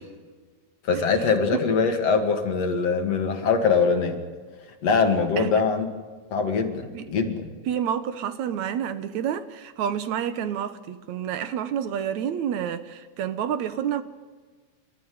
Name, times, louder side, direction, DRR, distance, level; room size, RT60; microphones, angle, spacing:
voice 1, 0.8-4.2 4.8-5.9 6.3-7.5, left 5 dB, 50° left, 5 dB, 3.1 m, -23 dB
voice 2, 7.7-14.0, right 9 dB, 65° right, 12 dB, 2.1 m, -29 dB
29.5 x 13.5 x 9.4 m, 1.4 s
omnidirectional pair, 4.0 m